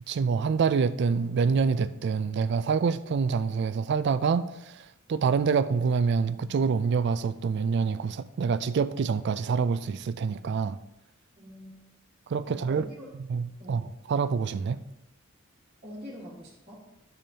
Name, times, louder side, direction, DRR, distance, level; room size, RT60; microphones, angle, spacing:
voice 1, 0.1-10.8 12.3-12.9 13.3-14.8, right 5 dB, 55° right, 0.3 m, -26 dB
voice 2, 11.4-11.8 12.5-13.1 13.6-13.8 15.8-16.9, equal, 25° right, 1.7 m, -44 dB
12.0 x 7.0 x 2.8 m
head